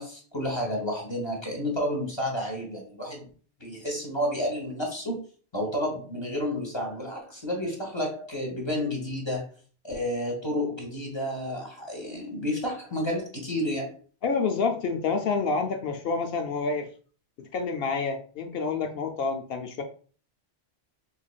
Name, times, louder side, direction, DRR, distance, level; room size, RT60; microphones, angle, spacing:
voice 1, 0.0-3.3 3.6-5.2 5.5-9.4 9.8-14.0, left 1 dB, 25° left, 0 dB, 1.0 m, -31 dB
voice 2, 14.2-16.9 17.4-19.8, left 4 dB, 70° left, 4 dB, 0.7 m, -28 dB
3.7 x 3.2 x 2.3 m, 0.41 s
omnidirectional pair, 1.1 m